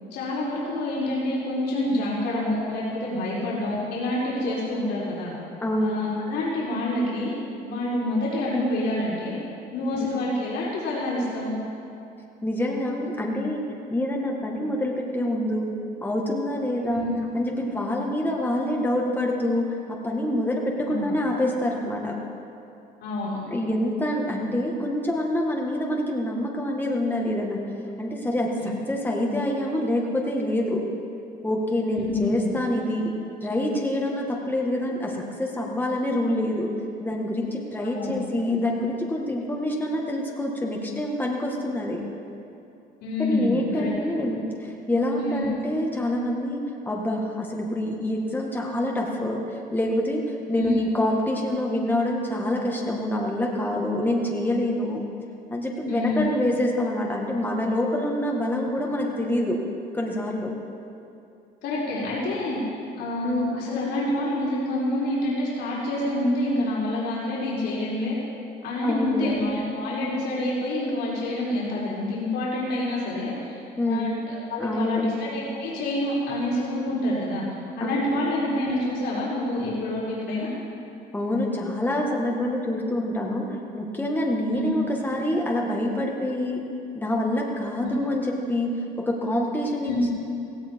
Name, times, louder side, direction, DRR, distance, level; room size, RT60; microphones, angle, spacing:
voice 1, 0.1-5.3 5.8-7.3 7.6-9.3 9.7-11.6 16.8-17.2 20.8-21.1 23.0-23.4 31.9-32.5 37.8-38.2 43.0-43.9 45.2-45.5 50.6-50.9 55.9-56.3 61.6-62.6 63.0-68.1 68.6-73.5 73.9-77.4 77.8-80.5 84.5-84.8 87.8-87.9 89.8-90.1, left 1 dB, 85° left, -6 dB, 4.7 m, -27 dB
voice 2, 5.6-6.1 9.9-10.3 12.4-13.6 13.9-15.7 16.0-17.0 17.3-19.7 20.0-22.1 23.5-27.6 28.0-28.5 28.9-30.8 31.4-33.1 33.4-36.7 37.0-42.0 43.2-49.4 49.7-50.2 50.5-55.0 55.5-59.6 59.9-60.5 63.2-63.6 68.8-69.3 73.8-74.1 74.6-75.1 77.8-78.2 81.1-86.6 86.9-88.7 89.0-90.1, left 1 dB, 10° left, -2 dB, 2.0 m, -26 dB
17.0 x 16.0 x 4.8 m, 2.6 s
cardioid pair, 110°, 17 cm